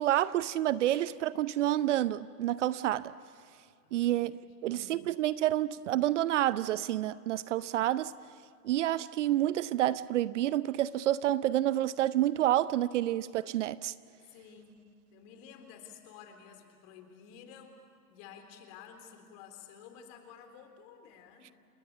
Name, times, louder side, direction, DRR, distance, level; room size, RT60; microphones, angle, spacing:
voice 1, 0.0-3.1 3.9-8.1 8.6-13.9, right 13 dB, 50° right, 0.7 m, -29 dB
voice 2, 3.8-4.8 14.3-17.8 18.1-21.6, left 7 dB, 40° left, 3.8 m, -52 dB
29.5 x 19.5 x 8.4 m
hypercardioid pair, 125°, 46 cm